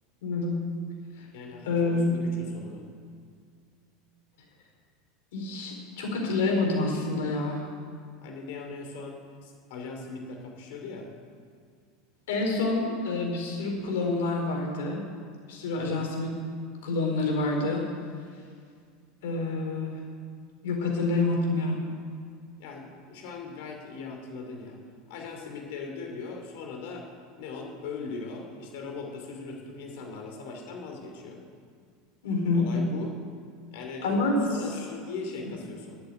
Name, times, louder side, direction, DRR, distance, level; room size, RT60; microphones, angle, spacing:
voice 1, 0.2-0.6 1.2-1.3 1.6-2.2 5.3-7.7 12.3-15.0 15.5-16.3 16.8-17.8 19.2-20.0 20.6-21.9 32.2-32.7 34.0-34.4 34.7-34.8, left 3 dB, 85° left, 0 dB, 4.4 m, -27 dB
voice 2, 1.2-2.9 8.2-11.1 15.7-16.1 22.6-24.8 25.1-27.1 27.4-31.4 32.5-33.2 33.7-34.1 34.5-36.0, left 4 dB, 65° left, 2 dB, 2.8 m, -40 dB
12.5 x 8.0 x 9.8 m, 2.1 s
supercardioid pair, 165°, 0 cm